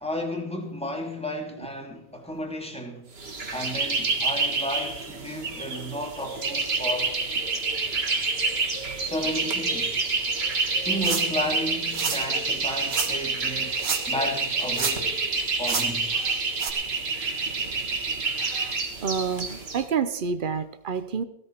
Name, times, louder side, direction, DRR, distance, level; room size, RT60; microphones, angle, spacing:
voice 1, 0.0-3.0 3.5-7.1 9.0-9.9 10.8-16.1, left 1 dB, 5° left, 2.1 m, -33 dB
sound 1, 3.2-19.8, right 3 dB, 35° right, 1.8 m, -28 dB
sound 2, 11.0-11.4 11.9-12.2 12.9-13.1 13.7-14.2 14.5-15.2 15.6-15.9 16.6-16.7, right 5 dB, 50° right, 1.8 m, -29 dB
voice 2, 18.4-18.8 19.0-21.2, right 6 dB, 70° right, 0.4 m, -29 dB
16.5 x 13.5 x 4.4 m
omnidirectional pair, 2.0 m